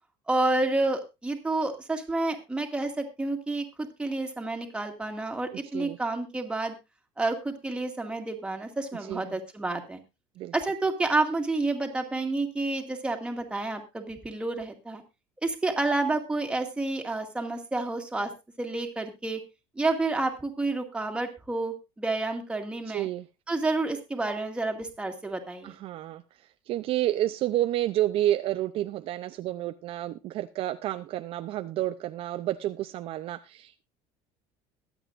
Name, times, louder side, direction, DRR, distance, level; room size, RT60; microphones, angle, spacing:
voice 1, 0.3-6.7 7.2-10.0 10.5-15.0 15.4-18.3 18.6-19.4 19.8-23.1 23.5-25.8, right 2 dB, 10° right, 3 dB, 2.1 m, -29 dB
voice 2, 22.9-23.3 25.6-26.2 26.7-33.8, right 13 dB, 50° right, 10 dB, 0.5 m, -30 dB
22.5 x 8.1 x 2.5 m, 0.25 s
cardioid pair, 135°, 12 cm